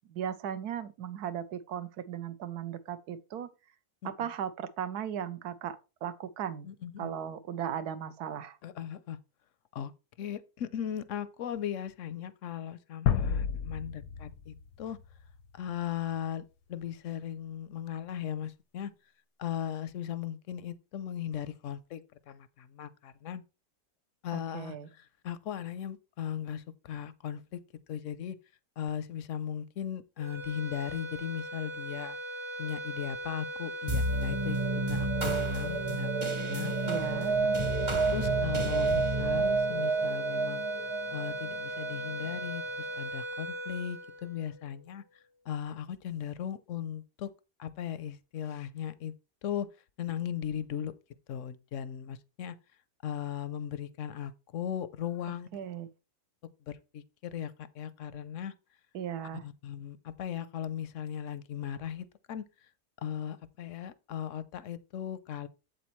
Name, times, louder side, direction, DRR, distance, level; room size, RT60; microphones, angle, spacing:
voice 1, 0.1-3.5 4.0-6.7 7.0-8.6 24.3-24.9 36.9-37.4 55.5-55.9 58.9-59.5, right 9 dB, 75° right, 1.3 m, -37 dB
voice 2, 6.6-7.1 8.6-9.2 9.7-9.9 10.2-15.0 15.5-18.9 19.4-22.0 22.3-23.4 24.2-24.8 25.2-27.6 27.9-28.4 28.8-32.2 32.6-36.7 38.1-40.6 41.1-45.0 45.5-47.3 47.6-49.1 49.4-49.7 50.0-50.9 51.3-52.5 53.0-55.5 56.9-58.5 59.4-62.4 63.0-65.5, left 9 dB, 65° left, 0.8 m, -37 dB
sound 1, 13.1-16.0, left 8 dB, 90° left, 1.3 m, -32 dB
sound 2, 30.2-44.8, right 1 dB, 60° right, 2.6 m, -39 dB
sound 3, 33.9-42.6, right 3 dB, 25° right, 0.8 m, -30 dB
8.0 x 7.7 x 3.1 m
omnidirectional pair, 1.7 m